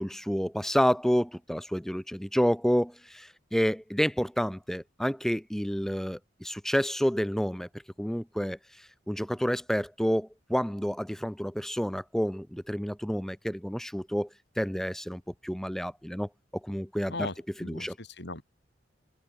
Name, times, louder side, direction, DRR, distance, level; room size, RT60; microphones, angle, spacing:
voice 1, 0.0-7.7 8.0-14.3 14.6-16.3 16.6-17.3 17.6-18.0, equal, ahead, 1.1 m, -29 dB
voice 2, 17.1-18.4, left 2 dB, 65° left, 6.9 m, -38 dB
head